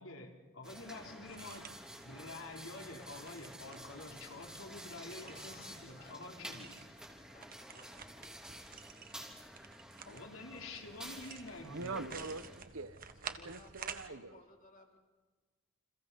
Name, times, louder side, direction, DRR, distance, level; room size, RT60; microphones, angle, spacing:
voice 1, 0.0-1.8 2.0-6.7 10.1-12.3, left 2 dB, 80° left, 2 dB, 3.9 m, -48 dB
sound 1, 0.6-12.6, equal, 5° right, 3.6 m, -51 dB
sound 2, 1.3-14.1, right 6 dB, 45° right, 1.6 m, -52 dB
voice 2, 5.2-6.2 6.4-6.6 7.3-8.0 8.7-9.2 13.3-15.0, left 3 dB, 40° left, 2 dB, 3.7 m, -60 dB
voice 3, 11.6-14.4, right 3 dB, 85° right, 12 dB, 1.3 m, -44 dB
29.5 x 28.0 x 4.3 m, 1.4 s
head